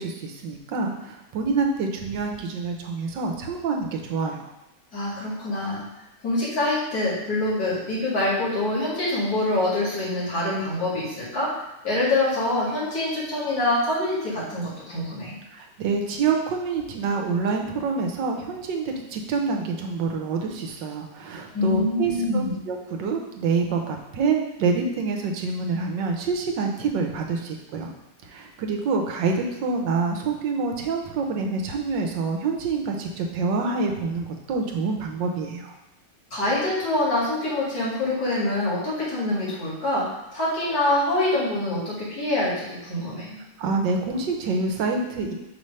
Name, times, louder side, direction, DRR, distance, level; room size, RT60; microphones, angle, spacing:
voice 1, 0.0-4.5 15.5-27.9 28.2-35.7 43.6-45.3, right 4 dB, 80° right, 2 dB, 1.5 m, -27 dB
voice 2, 4.9-5.8 6.2-11.5 11.8-15.4 21.5-22.5 36.3-40.1 40.3-43.4, left 2 dB, 55° left, -7 dB, 2.7 m, -25 dB
5.4 x 3.2 x 5.4 m, 0.96 s
omnidirectional pair, 1.9 m